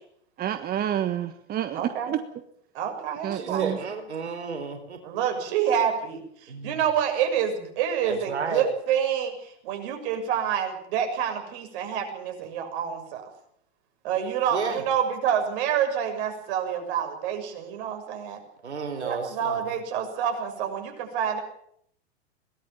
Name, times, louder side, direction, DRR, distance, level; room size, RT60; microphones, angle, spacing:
voice 1, 0.4-2.2 3.2-3.8, right 10 dB, 30° right, 9 dB, 1.4 m, -28 dB
voice 2, 1.7-2.1 2.7-3.7 5.0-13.2 14.0-18.4 19.0-21.4, right 8 dB, 55° right, 5 dB, 6.7 m, -28 dB
voice 3, 3.3-5.2 6.5-6.8 8.0-8.7 14.5-14.8 18.6-19.7, right 5 dB, 85° right, 6 dB, 4.4 m, -32 dB
22.0 x 19.0 x 7.4 m, 0.69 s
hypercardioid pair, 105°, 33 cm